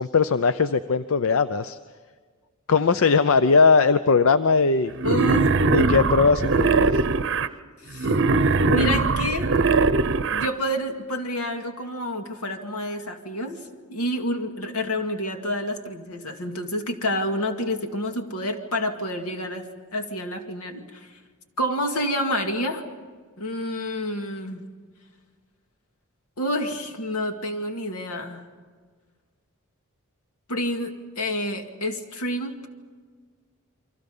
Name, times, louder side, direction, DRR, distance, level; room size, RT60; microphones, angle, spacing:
voice 1, 0.0-1.8 2.7-4.9 5.7-7.0, left 4 dB, 65° left, 12 dB, 0.6 m, -19 dB
voice 2, 5.0-5.6 7.8-8.1 8.6-9.5 10.3-13.6 13.9-19.7 19.9-21.1 21.6-22.8 23.4-24.7 26.4-28.5 30.5-32.7, equal, 80° left, 5 dB, 2.2 m, -28 dB
Wild animals, 5.0-7.5 8.0-10.5, right 3 dB, 55° right, 0.8 m, -21 dB
29.5 x 24.0 x 5.5 m, 1.6 s
head